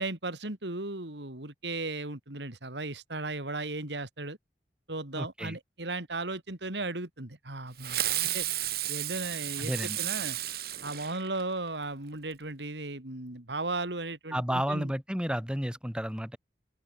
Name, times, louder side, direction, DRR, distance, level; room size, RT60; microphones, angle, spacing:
voice 1, 0.0-4.4 4.9-8.0 8.3-8.5 8.9-10.4 10.8-14.9, right 2 dB, 85° right, 3.2 m, -36 dB
voice 2, 5.2-5.6 9.6-10.0 14.3-16.4, equal, 5° right, 2.5 m, -32 dB
Fireworks, 7.8-11.7, right 13 dB, 55° right, 2.5 m, -33 dB
head